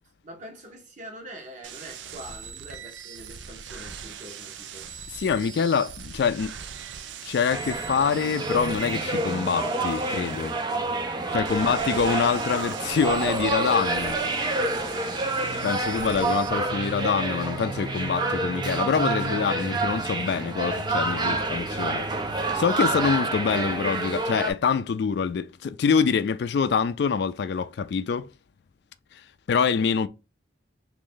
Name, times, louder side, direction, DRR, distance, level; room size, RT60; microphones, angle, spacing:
voice 1, 0.2-4.9 11.5-11.8, equal, 45° right, 1.0 m, -43 dB
sound 1, 1.6-16.5, right 7 dB, 80° right, 0.4 m, -42 dB
voice 2, 5.1-6.5 7.2-10.5 11.3-14.2 15.6-22.1 22.5-28.3 29.5-30.1, left 6 dB, 60° left, 0.3 m, -25 dB
sound 2, 7.5-24.5, right 2 dB, 25° right, 0.5 m, -28 dB
3.1 x 2.6 x 3.8 m
head